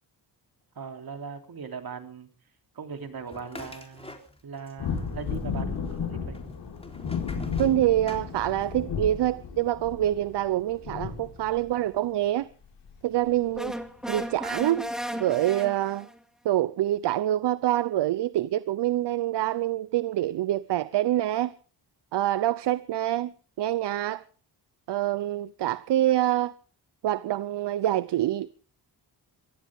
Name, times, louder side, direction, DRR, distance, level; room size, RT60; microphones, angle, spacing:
voice 1, 0.7-2.3 2.7-4.1 4.4-6.4, right 6 dB, 60° right, 3.4 m, -39 dB
sound 1, 3.3-4.7 5.0-5.7 6.3-8.8, left 1 dB, 15° left, 3.7 m, -43 dB
sound 2, 4.8-11.9 12.8-12.9 13.2-13.5 14.1-14.2, left 6 dB, 90° left, 5.0 m, -34 dB
voice 2, 7.6-12.5 13.0-13.8 14.1-14.9 15.1-16.1 16.4-21.5 22.1-23.3 23.6-24.2 24.9-26.5 27.0-28.5, right 13 dB, 80° right, 0.7 m, -26 dB
sound 3, 13.6-16.2, equal, ahead, 2.2 m, -35 dB
23.0 x 15.5 x 3.6 m
cardioid pair, 85°, 41 cm